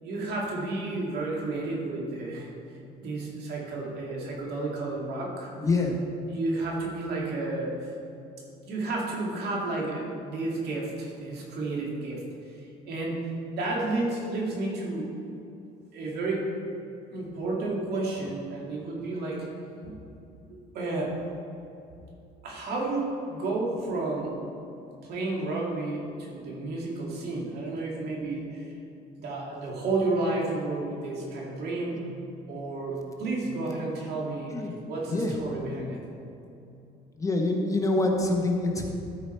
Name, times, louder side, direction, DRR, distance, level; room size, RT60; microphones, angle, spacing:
voice 1, 0.0-2.5 3.0-5.5 6.3-7.7 8.6-12.2 12.6-15.1 15.9-16.5 17.1-19.5 19.8-20.0 20.5-21.2 22.4-24.4 25.0-28.7 29.2-31.9 32.5-34.6 34.9-36.0, right 2 dB, 70° right, -3 dB, 2.2 m, -31 dB
voice 2, 5.6-6.0 31.9-32.1 34.5-34.8 35.1-35.3 37.2-38.9, left 2 dB, 20° left, 1 dB, 1.1 m, -26 dB
13.5 x 4.8 x 4.5 m, 2.8 s
cardioid pair, 110°, 17 cm